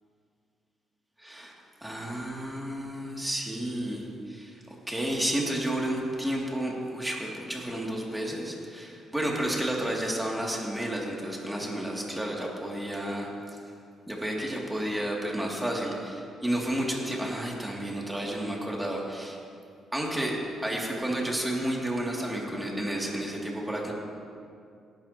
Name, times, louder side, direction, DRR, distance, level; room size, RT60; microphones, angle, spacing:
voice 1, 1.2-1.5 1.8-13.6 14.1-19.4 19.9-23.9, right 1 dB, 10° right, -2 dB, 2.5 m, -31 dB
17.5 x 11.0 x 2.9 m, 2.4 s
cardioid pair, 90°, 0 cm